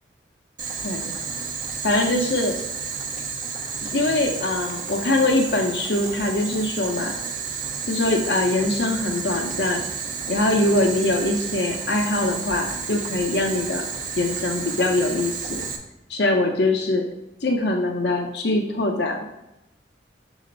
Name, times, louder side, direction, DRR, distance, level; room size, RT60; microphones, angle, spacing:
Boiling, 0.6-15.8, right 5 dB, 45° right, 0.9 m, -31 dB
voice 1, 1.8-2.5 3.9-7.1 7.9-9.8 10.3-13.8 14.2-15.7 16.1-17.1 17.4-19.2, left 2 dB, 60° left, 3 dB, 0.7 m, -23 dB
6.7 x 4.9 x 3.9 m, 0.92 s
head